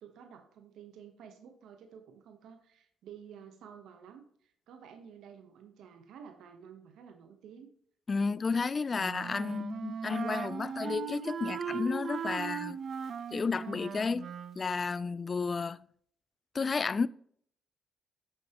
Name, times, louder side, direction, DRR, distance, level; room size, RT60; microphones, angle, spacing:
voice 1, 0.0-7.7 8.2-9.1 9.4-9.6, right 7 dB, 80° right, 1.0 m, -52 dB
voice 2, 8.1-12.8 13.3-14.3 14.6-15.8 16.5-17.1, left 4 dB, 35° left, 0.3 m, -32 dB
Wind instrument woodwind instrument, 9.0-14.6, right 7 dB, 55° right, 0.5 m, -38 dB
8.7 x 6.9 x 2.9 m
cardioid pair, 90°, 0 cm